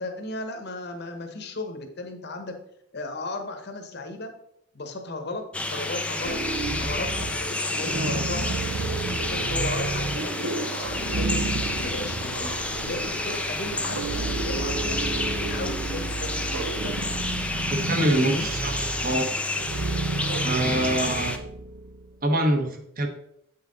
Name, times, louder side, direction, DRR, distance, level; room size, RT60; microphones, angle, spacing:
voice 1, 0.0-2.5 2.9-4.3 4.7-5.4 5.7-6.4 6.7-8.5 9.1-11.5 11.8-15.0 15.4-17.0 18.1-18.5, left 2 dB, 50° left, 5 dB, 1.1 m, -35 dB
sound 1, 5.5-21.4, left 2 dB, 5° left, 0.5 m, -30 dB
sound 2, 6.2-22.0, right 3 dB, 80° right, 0.7 m, -31 dB
voice 2, 17.7-19.3 20.4-21.4 22.2-23.1, right 1 dB, 45° right, 4 dB, 1.1 m, -25 dB
8.3 x 5.7 x 4.0 m, 0.75 s
head